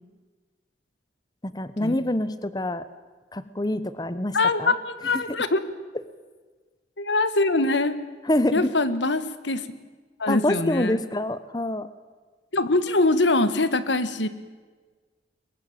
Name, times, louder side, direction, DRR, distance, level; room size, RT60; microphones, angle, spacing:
voice 1, 1.4-2.8 3.3-4.7 5.1-5.4 8.2-8.7 10.3-11.9, left 1 dB, 20° left, 14 dB, 1.0 m, -26 dB
voice 2, 4.3-5.6 7.0-8.0 8.5-9.7 10.2-11.0 12.5-14.3, left 2 dB, 85° left, 13 dB, 1.7 m, -23 dB
22.5 x 22.0 x 8.9 m, 1.4 s
head